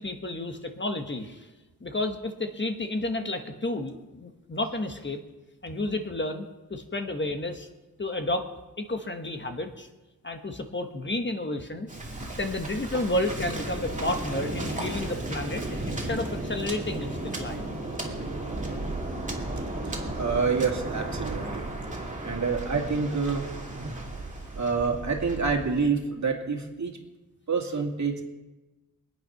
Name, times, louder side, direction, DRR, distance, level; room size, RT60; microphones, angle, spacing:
voice 1, 0.0-1.5 1.8-5.2 5.6-7.7 8.0-8.5 8.8-9.9 10.2-17.8, left 2 dB, 30° left, 5 dB, 1.3 m, -31 dB
Waves surf, 11.9-25.8, right 2 dB, 20° right, 2.6 m, -34 dB
sound 1, 13.8-21.7, left 2 dB, 65° left, 3.3 m, -50 dB
voice 2, 19.8-21.7 22.2-23.5 24.5-27.0 27.5-28.2, right 5 dB, 55° right, 2 dB, 2.3 m, -27 dB
24.0 x 9.1 x 5.8 m, 1.1 s
wide cardioid pair, 120°, 35 cm